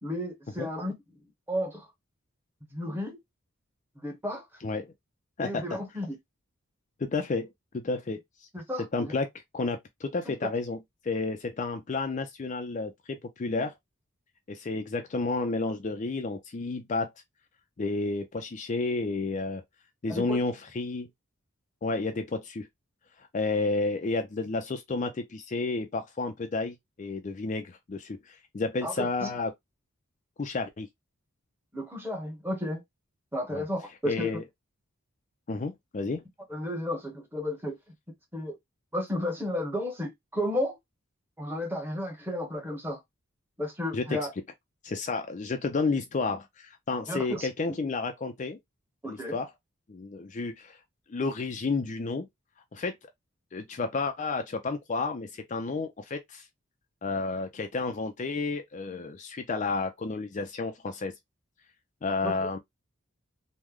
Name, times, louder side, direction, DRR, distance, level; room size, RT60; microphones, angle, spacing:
voice 1, 0.0-1.0 1.5-1.9 2.7-3.2 4.0-4.5 5.4-6.2 8.5-9.1 10.3-10.4 20.1-20.4 28.8-29.3 31.7-32.8 33.3-34.4 36.5-37.8 38.3-38.6 38.9-40.8 41.4-43.0 43.6-44.3 47.1-47.5 49.0-49.4 62.2-62.5, left 1 dB, 10° right, 0.9 m, -33 dB
voice 2, 7.0-8.2 8.9-9.3 9.5-10.8 11.0-12.9 13.4-13.7 14.5-17.1 17.8-19.6 20.0-21.1 21.8-22.7 23.3-29.5 30.4-30.9 33.5-33.6 34.0-34.4 35.5-36.2 43.9-44.2 44.8-48.6 49.0-49.5 49.9-50.8 51.1-52.3 52.7-52.9 53.5-56.5 57.0-61.1 62.0-62.6, left 3 dB, 35° left, 0.4 m, -31 dB
3.1 x 2.1 x 3.5 m
head